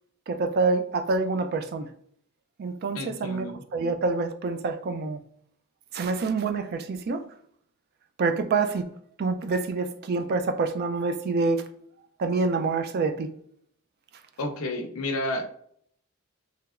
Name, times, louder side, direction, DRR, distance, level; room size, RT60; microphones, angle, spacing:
voice 1, 0.3-1.9 2.6-3.5 3.7-5.2 5.9-7.2 8.2-8.8 9.2-11.6 12.2-13.3, right 3 dB, 45° right, 9 dB, 0.3 m, -26 dB
voice 2, 2.9-3.6 14.4-15.5, left 1 dB, 80° left, 4 dB, 0.5 m, -31 dB
3.2 x 2.8 x 2.4 m, 0.65 s
head